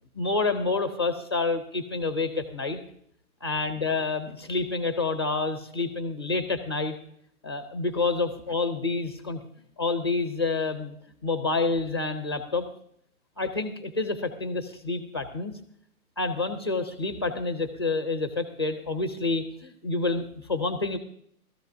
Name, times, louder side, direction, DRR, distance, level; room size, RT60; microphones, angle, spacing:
voice 1, 0.1-2.8 3.4-6.9 7.4-9.4 9.8-10.9 11.2-12.6 13.4-15.5 16.2-21.0, left 3 dB, 20° left, 9 dB, 0.5 m, -28 dB
19.0 x 13.5 x 2.6 m, 0.69 s
hypercardioid pair, 170°, 44 cm